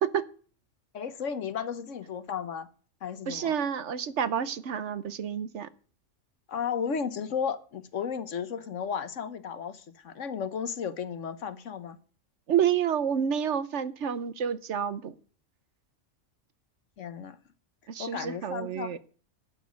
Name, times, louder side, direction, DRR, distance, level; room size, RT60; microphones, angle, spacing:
voice 1, 0.9-2.7 3.0-3.5 6.5-12.0 17.0-17.4 18.0-19.0, left 7 dB, 75° left, 1.4 m, -34 dB
voice 2, 3.3-5.7 12.5-15.1 17.9-19.0, right 8 dB, 65° right, 1.1 m, -29 dB
11.5 x 9.1 x 6.3 m
omnidirectional pair, 1.3 m